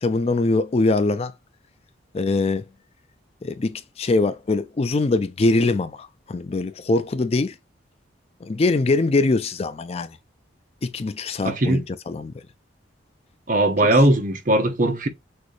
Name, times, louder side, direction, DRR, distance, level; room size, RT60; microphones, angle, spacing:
voice 1, 0.0-1.3 2.1-2.6 3.4-7.6 8.4-10.2 10.8-12.3, left 3 dB, 30° left, 0.4 m, -22 dB
voice 2, 11.4-11.9 13.5-15.1, right 1 dB, 45° right, 1.0 m, -19 dB
6.1 x 2.7 x 3.2 m
head